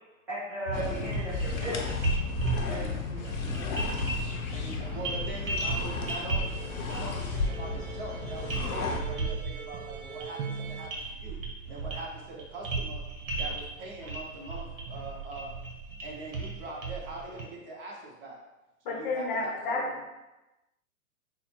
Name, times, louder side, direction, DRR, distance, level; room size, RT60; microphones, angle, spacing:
voice 1, 0.3-2.0 2.7-3.3 3.7-5.0, right 1 dB, 5° right, -14 dB, 0.6 m, -38 dB
sound 1, 0.7-9.0, left 5 dB, 85° left, 0.8 m, -34 dB
sound 2, 0.7-17.4, right 3 dB, 65° right, 1.1 m, -35 dB
sound 3, 4.2-10.9, right 7 dB, 85° right, 0.6 m, -43 dB
voice 2, 4.5-6.5 6.8-11.4 11.7-13.0 13.4-15.5 16.0-18.4 18.8-20.0, right 2 dB, 40° right, -2 dB, 1.0 m, -42 dB
voice 3, 18.8-19.9, left 3 dB, 35° left, -1 dB, 0.8 m, -30 dB
3.7 x 2.1 x 4.4 m, 1.0 s
hypercardioid pair, 140°, 42 cm